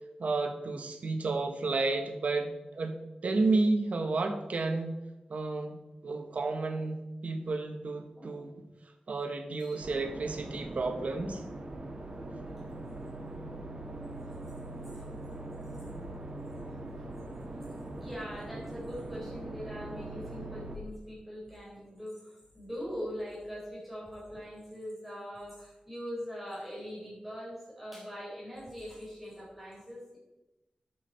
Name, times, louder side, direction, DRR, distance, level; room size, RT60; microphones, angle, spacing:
voice 1, 0.2-5.0 5.3-8.5 9.1-11.4, right 3 dB, 75° right, 6 dB, 1.4 m, -31 dB
sound 1, 9.8-20.8, right 2 dB, 45° right, 2.0 m, -41 dB
voice 2, 18.0-30.2, equal, 5° right, -6 dB, 4.1 m, -42 dB
12.0 x 7.5 x 4.5 m, 1.0 s
wide cardioid pair, 100°, 2 cm